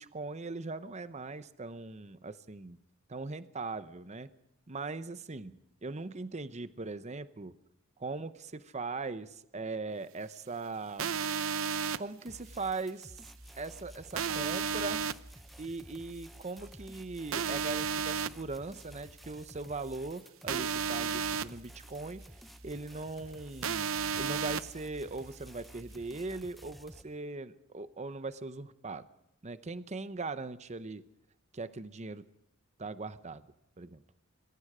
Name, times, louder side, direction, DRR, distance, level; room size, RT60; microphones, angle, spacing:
voice 1, 0.0-2.8 3.1-4.3 4.7-7.6 8.0-11.1 12.0-13.2 13.6-15.0 15.6-22.3 22.6-23.9 24.2-29.1 29.4-31.0 31.5-32.2 32.8-33.4 33.8-34.0, right 3 dB, 35° right, 13 dB, 0.8 m, -40 dB
sound 1, 11.0-12.0 14.2-15.1 17.3-18.3 20.5-21.5 23.6-24.6, right 7 dB, 75° right, 0.7 m, -32 dB
sound 2, 12.3-27.0, equal, ahead, 0.8 m, -52 dB
26.0 x 22.0 x 4.9 m, 0.86 s
head